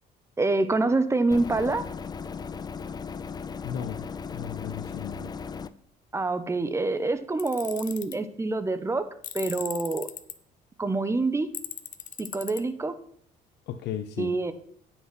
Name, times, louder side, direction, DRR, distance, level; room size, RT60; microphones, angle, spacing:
voice 1, 0.4-1.8 6.1-9.1 9.3-10.1 10.8-11.5 12.2-12.9 14.2-14.5, right 3 dB, 15° right, 11 dB, 0.9 m, -26 dB
sound 1, 1.3-5.7, left 5 dB, 25° left, 0.5 m, -37 dB
voice 2, 3.6-4.1 4.3-5.3 13.7-14.3, left 9 dB, 80° left, 7 dB, 0.7 m, -35 dB
Tools, 7.4-8.2 9.2-10.3 11.5-12.6, left 10 dB, 50° left, 0.8 m, -38 dB
9.4 x 6.0 x 6.0 m, 0.64 s
cardioid pair, 110°, 17 cm